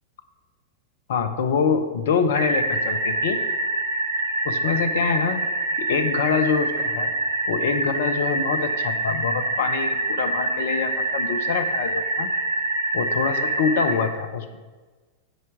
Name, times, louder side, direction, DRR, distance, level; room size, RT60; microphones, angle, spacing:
voice 1, 1.1-3.4 4.4-5.4 5.8-7.1 7.5-12.3 12.9-14.6, left 6 dB, 60° left, 10 dB, 0.7 m, -25 dB
sound 1, 2.3-13.9, right 2 dB, 90° left, 2.6 m, -25 dB
9.4 x 4.5 x 6.0 m, 1.4 s
figure-of-eight pair, 90°, 0 cm